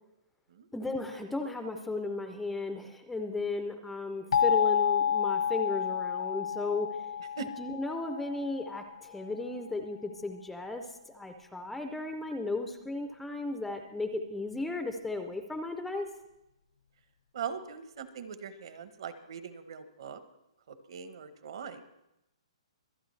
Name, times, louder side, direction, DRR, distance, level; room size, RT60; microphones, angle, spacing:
voice 1, 0.7-6.9 7.6-16.1, left 2 dB, 5° left, 6 dB, 0.4 m, -35 dB
sound 1, 4.3-9.0, left 8 dB, 80° left, 1.0 m, -30 dB
voice 2, 17.3-20.2 20.7-21.8, right 6 dB, 50° right, 11 dB, 1.0 m, -41 dB
24.5 x 8.7 x 3.2 m, 0.89 s
hypercardioid pair, 175°, 3 cm